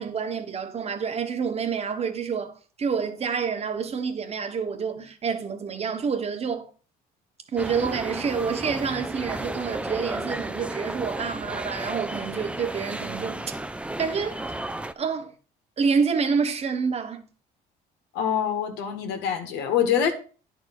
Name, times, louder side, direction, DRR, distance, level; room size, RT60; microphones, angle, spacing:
voice 1, 0.0-2.5 2.8-6.7 7.5-13.5 14.0-14.4 15.0-15.3 15.8-17.2, right 6 dB, 40° right, 1.4 m, -28 dB
sound 1, 7.6-14.9, right 1 dB, 5° right, 0.6 m, -33 dB
voice 2, 18.1-20.1, left 8 dB, 90° left, 1.8 m, -25 dB
10.5 x 4.8 x 6.1 m
cardioid pair, 110°, 17 cm